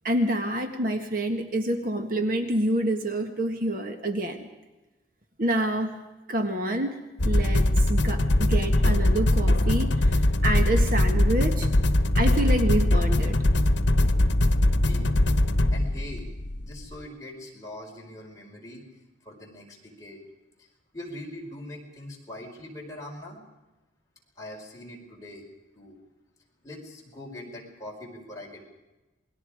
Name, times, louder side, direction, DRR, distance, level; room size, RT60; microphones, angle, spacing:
voice 1, 0.0-4.5 5.4-5.9 6.3-7.0 7.2-11.7 12.1-13.4, right 1 dB, 50° right, 5 dB, 1.7 m, -27 dB
sound 1, 7.2-16.8, left 1 dB, 80° left, 1.1 m, -22 dB
voice 2, 14.8-15.1 15.7-16.3 16.6-18.8 19.2-20.2 20.6-20.7 20.9-23.4 24.4-25.4 25.7-26.0 26.6-28.6, left 1 dB, 20° left, -2 dB, 4.9 m, -42 dB
28.0 x 21.5 x 5.0 m, 1.1 s
head